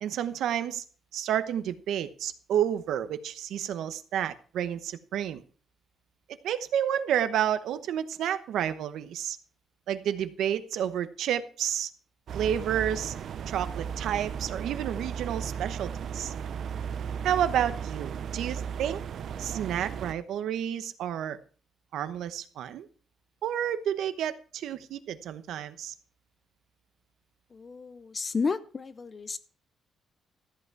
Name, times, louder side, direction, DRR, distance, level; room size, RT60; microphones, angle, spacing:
voice 1, 0.0-0.8 1.1-5.4 6.4-9.4 9.9-11.9 12.3-13.1 13.5-16.3 17.2-19.0 19.4-21.4 21.9-22.9 23.4-25.9, right 10 dB, 70° right, 12 dB, 0.9 m, -30 dB
sound 1, 12.3-20.1, right 7 dB, 50° right, 0.5 m, -35 dB
voice 2, 27.5-29.4, left 4 dB, 25° left, 14 dB, 0.5 m, -32 dB
14.0 x 8.3 x 4.7 m, 0.40 s
cardioid pair, 175°, 0 cm